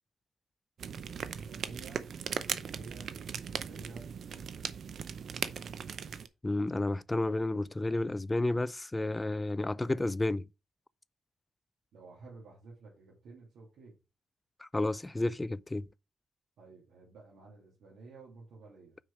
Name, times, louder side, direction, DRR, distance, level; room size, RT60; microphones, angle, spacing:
sound 1, 0.8-6.3, right 7 dB, 65° right, 0.6 m, -38 dB
voice 1, 1.1-4.8 11.9-14.0 16.6-19.0, right 3 dB, 80° right, 2.7 m, -53 dB
voice 2, 6.4-10.5 14.6-15.9, left 2 dB, 15° left, 0.3 m, -31 dB
6.2 x 4.8 x 4.8 m
cardioid pair, 95°, 0 cm